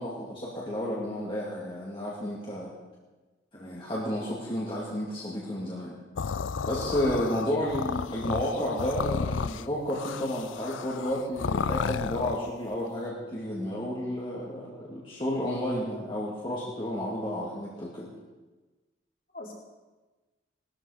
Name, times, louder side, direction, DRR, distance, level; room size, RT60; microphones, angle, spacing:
voice 1, 0.0-2.7 3.5-6.0 6.7-18.1, equal, 25° left, -6 dB, 2.4 m, -32 dB
sound 1, 6.2-12.5, left 5 dB, 85° left, 0.5 m, -32 dB
voice 2, 6.5-7.0 19.3-19.5, left 1 dB, 45° left, -2 dB, 3.9 m, -42 dB
19.0 x 13.5 x 5.1 m, 1.2 s
head